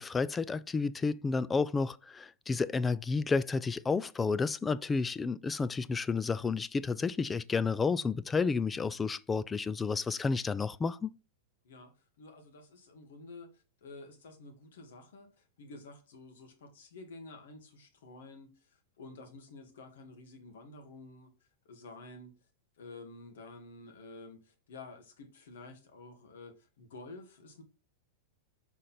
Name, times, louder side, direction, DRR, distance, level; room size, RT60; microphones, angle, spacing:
voice 1, 0.0-11.1, left 4 dB, 15° left, 0.4 m, -31 dB
voice 2, 11.6-22.3 22.8-27.6, left 3 dB, 80° left, 2.0 m, -51 dB
5.1 x 4.1 x 5.7 m
hypercardioid pair, 120°, 0 cm